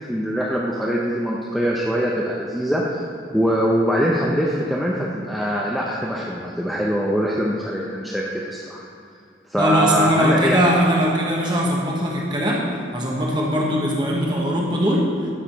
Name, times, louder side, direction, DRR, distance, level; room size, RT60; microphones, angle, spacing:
voice 1, 0.1-3.1 3.3-8.8 9.5-10.6, equal, ahead, -5 dB, 0.7 m, -23 dB
voice 2, 9.6-12.6 12.9-15.0, equal, 25° right, -3 dB, 1.2 m, -20 dB
11.0 x 4.9 x 6.0 m, 2.3 s
head